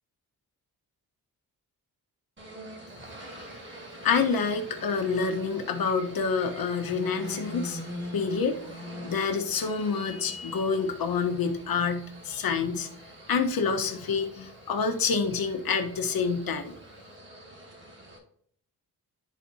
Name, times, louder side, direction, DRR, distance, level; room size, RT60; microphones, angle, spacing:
sound 1, 2.4-18.2, equal, 30° right, 2.1 m, -44 dB
voice 1, 4.0-7.8 8.1-12.9 13.3-16.7, left 5 dB, 70° left, 5 dB, 1.2 m, -27 dB
11.5 x 4.2 x 2.8 m, 0.65 s
wide cardioid pair, 120°, 37 cm